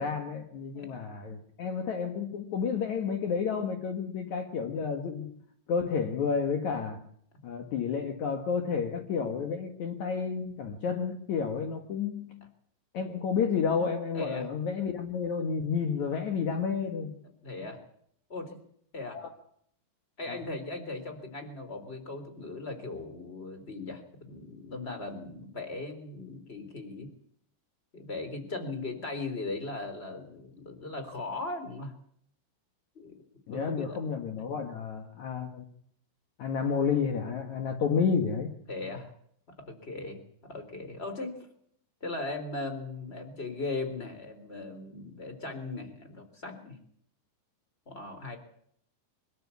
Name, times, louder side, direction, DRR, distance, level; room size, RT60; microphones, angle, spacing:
voice 1, 0.0-5.3 5.7-7.0 7.4-12.5 12.9-17.2 19.1-19.3 20.3-20.4 33.5-35.7 36.4-38.5, left 6 dB, 70° left, 4 dB, 1.7 m, -31 dB
voice 2, 14.1-14.5 17.4-17.8 18.3-18.6 18.9-19.2 20.2-27.1 27.9-31.9 32.9-33.1 33.5-34.0 38.7-39.1 39.6-41.5 42.0-46.8 47.8-48.4, left 3 dB, 15° left, 7 dB, 3.1 m, -38 dB
24.5 x 13.0 x 8.5 m, 0.66 s
omnidirectional pair, 5.9 m